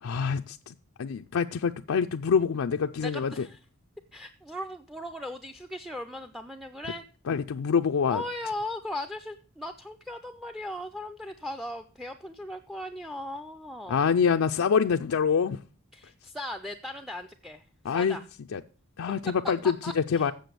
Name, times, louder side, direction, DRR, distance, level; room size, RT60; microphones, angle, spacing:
voice 1, 0.0-3.5 7.3-8.2 13.9-15.6 17.8-18.2 18.5-18.6 19.0-20.3, left 6 dB, 75° left, 0.4 m, -26 dB
voice 2, 3.0-3.6 4.1-7.0 8.1-14.1 15.9-17.6 17.9-18.2 19.8-20.3, left 1 dB, ahead, 0.4 m, -38 dB
7.8 x 6.8 x 6.8 m
head